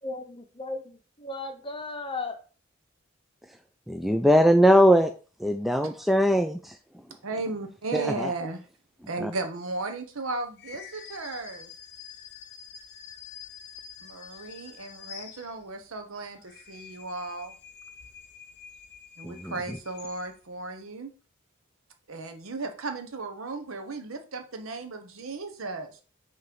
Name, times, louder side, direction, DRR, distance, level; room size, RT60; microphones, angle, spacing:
voice 1, 0.0-2.4, left 3 dB, 25° left, 0.8 m, -36 dB
voice 2, 3.9-5.1 5.4-7.2 7.9-8.3 9.2-9.3 19.2-19.8, equal, ahead, 0.3 m, -22 dB
voice 3, 7.2-8.6 9.1-11.7 14.0-17.5 19.2-21.1 22.1-26.0, right 3 dB, 80° right, 0.9 m, -35 dB
sound 1, 10.6-15.8 16.3-20.5, left 8 dB, 55° left, 0.7 m, -47 dB
5.9 x 3.2 x 5.2 m
head